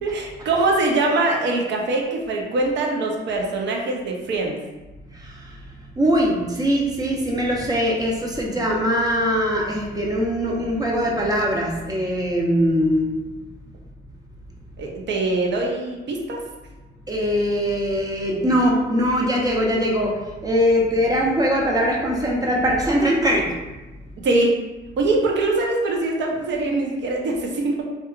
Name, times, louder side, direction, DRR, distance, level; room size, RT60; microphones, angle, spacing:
voice 1, 0.0-4.6 14.8-16.4 24.2-24.6 25.0-27.8, right 2 dB, 65° right, 0 dB, 0.6 m, -23 dB
voice 2, 5.1-5.5 6.0-13.1 17.1-20.1 20.4-23.5, equal, 20° right, -1 dB, 0.6 m, -21 dB
2.8 x 2.3 x 2.3 m, 1.1 s
cardioid pair, 90°, 20 cm